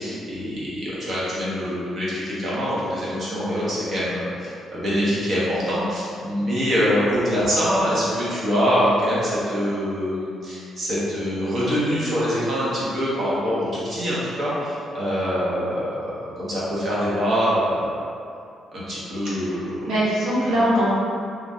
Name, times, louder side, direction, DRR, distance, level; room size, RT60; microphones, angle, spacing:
voice 1, 0.0-17.9 18.7-19.9 20.5-20.6, equal, 50° right, -9 dB, 1.1 m, -24 dB
voice 2, 19.3-20.9, equal, 80° right, -9 dB, 1.0 m, -22 dB
3.0 x 2.4 x 2.7 m, 2.4 s
cardioid pair, 90°, 0 cm